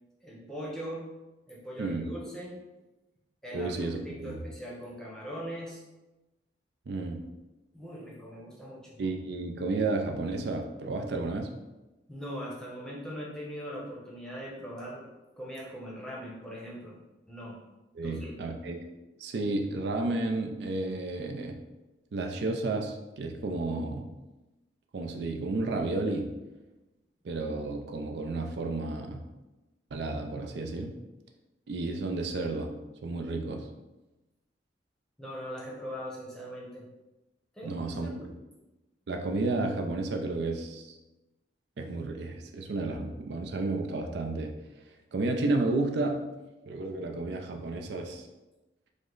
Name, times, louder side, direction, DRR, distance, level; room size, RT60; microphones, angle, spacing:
voice 1, 0.2-1.1 1.5-2.5 3.4-5.8 7.7-9.0 12.1-15.0 15.4-17.0 17.3-17.6 18.0-18.3 35.2-36.8 37.5-38.3, equal, 5° left, -5 dB, 0.8 m, -40 dB
voice 2, 1.8-2.1 3.5-4.4 6.9-7.3 9.0-11.5 18.0-18.8 19.2-21.6 22.1-24.1 24.9-26.3 27.2-29.2 29.9-30.9 31.7-32.7 33.0-33.7 37.6-38.1 39.1-41.0 41.8-44.5 45.1-46.3 46.7-48.3, right 2 dB, 65° right, 3 dB, 0.4 m, -32 dB
5.0 x 2.0 x 3.8 m, 1.1 s
head